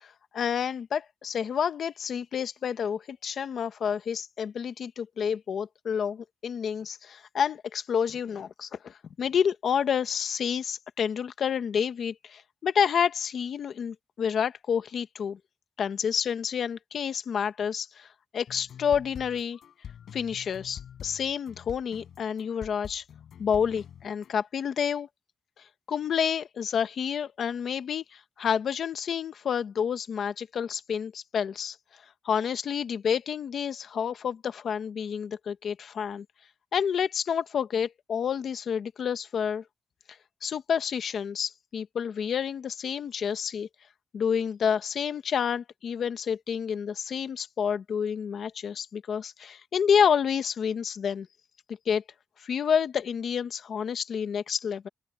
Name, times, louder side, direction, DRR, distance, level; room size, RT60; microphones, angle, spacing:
voice 1, 0.0-15.4 15.8-18.1 18.3-19.6 20.1-23.0 23.4-25.1 25.9-31.8 32.2-36.2 36.7-39.6 40.4-43.7 44.1-51.3 51.7-52.0 52.4-54.9, left 7 dB, 65° left, 1.2 m, -29 dB
sound 1, 18.5-24.3, left 9 dB, 80° left, 6.9 m, -45 dB
open air
wide cardioid pair, 160°, 0 cm